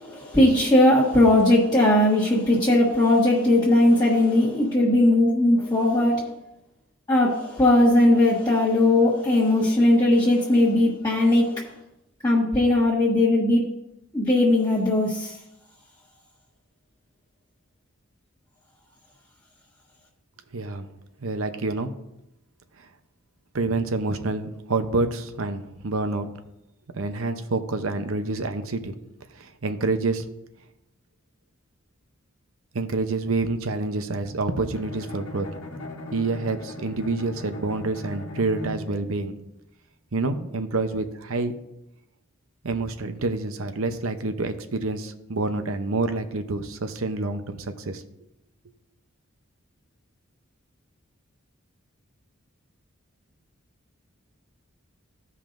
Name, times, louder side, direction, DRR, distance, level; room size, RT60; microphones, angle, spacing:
voice 1, 0.0-6.2 7.1-11.6 12.2-13.6 14.1-15.4, left 1 dB, 20° left, -7 dB, 1.4 m, -19 dB
voice 2, 20.5-20.9 21.2-21.9 23.5-26.3 26.9-28.9 29.3-30.3 32.7-35.5 36.1-39.4 40.1-41.5 42.6-48.0, right 3 dB, 85° right, 8 dB, 0.8 m, -27 dB
Bowed string instrument, 34.7-39.1, left 1 dB, 80° left, 1.2 m, -38 dB
15.5 x 5.4 x 2.6 m, 0.86 s
head